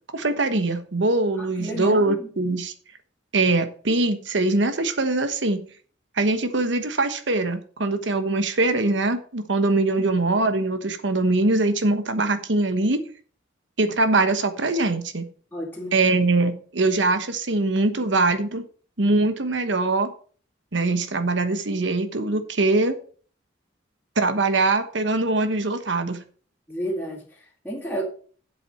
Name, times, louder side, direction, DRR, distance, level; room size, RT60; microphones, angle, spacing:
voice 1, 0.1-2.7 3.3-5.6 6.2-13.0 13.8-15.3 15.9-18.6 19.0-20.1 20.7-22.9 24.2-26.2, right 2 dB, 70° right, 9 dB, 1.2 m, -22 dB
voice 2, 1.4-2.3 9.9-10.1 15.5-15.9 26.7-28.0, equal, 10° left, -8 dB, 2.4 m, -32 dB
7.8 x 7.6 x 5.5 m, 0.44 s
head